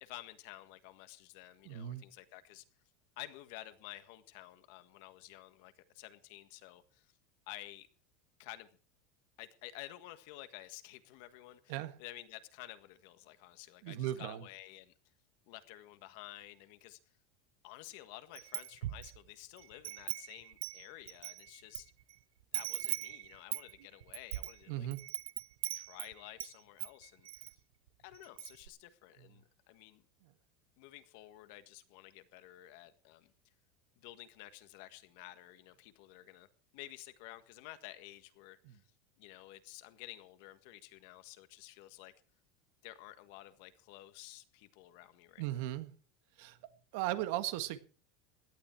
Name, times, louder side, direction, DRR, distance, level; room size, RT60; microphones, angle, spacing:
voice 1, 0.0-2.6 3.2-7.1 7.5-7.9 8.4-8.7 9.4-14.9 15.5-17.0 17.6-21.9 22.5-24.9 25.7-27.5 28.0-30.0 30.8-33.3 34.0-36.5 36.7-38.8 39.2-42.1 42.8-45.7, left 16 dB, 60° left, 1.6 m, -52 dB
voice 2, 1.6-2.0 11.7-11.9 13.8-14.5 24.7-25.0 29.2-29.3 30.2-30.3 38.6-38.8 45.4-45.9 46.4-46.6 46.9-47.8, right 14 dB, 60° right, 1.6 m, -37 dB
Wind chime, 18.4-19.2 19.6-21.8 22.1-22.2 22.5-26.5 26.8-27.5 27.9-28.0 28.2-28.7, right 15 dB, 90° right, 0.7 m, -40 dB
17.0 x 12.0 x 4.6 m
supercardioid pair, 160°, 0 cm